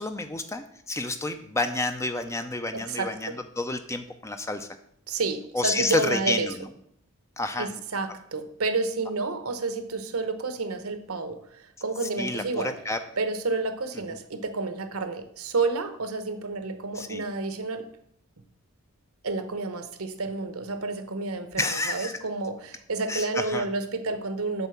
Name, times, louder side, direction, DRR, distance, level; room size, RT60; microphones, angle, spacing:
voice 1, 0.0-4.7 5.5-6.7 7.4-7.7 12.2-13.0 16.9-17.2 21.6-22.1 23.1-23.7, left 2 dB, 15° left, 8 dB, 0.5 m, -29 dB
voice 2, 2.7-3.4 5.1-6.5 7.6-12.7 13.2-17.8 19.2-21.6 21.9-24.7, right 3 dB, 75° right, 9 dB, 0.9 m, -30 dB
8.1 x 4.1 x 6.9 m, 0.68 s
head